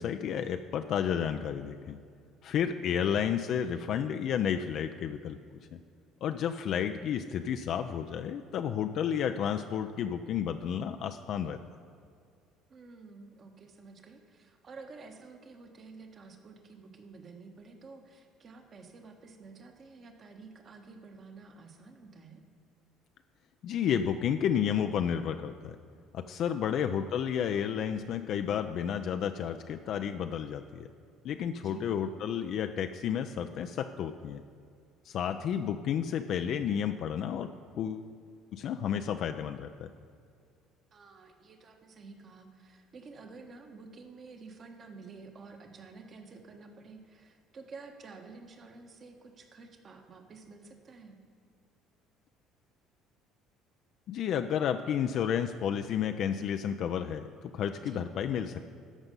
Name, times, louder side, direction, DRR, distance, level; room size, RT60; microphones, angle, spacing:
voice 1, 0.0-2.0 2.4-5.4 5.7-5.8 6.2-11.6 23.6-25.8 26.1-30.9 31.2-34.4 35.1-37.5 37.8-38.1 38.5-39.9 54.1-58.7, left 8 dB, 60° left, 7 dB, 0.4 m, -31 dB
voice 2, 12.7-22.4 31.6-31.9 40.9-51.2 57.8-58.1, right 4 dB, 45° right, 4 dB, 1.3 m, -50 dB
13.5 x 5.4 x 5.4 m, 2.3 s
supercardioid pair, 75°, 0 cm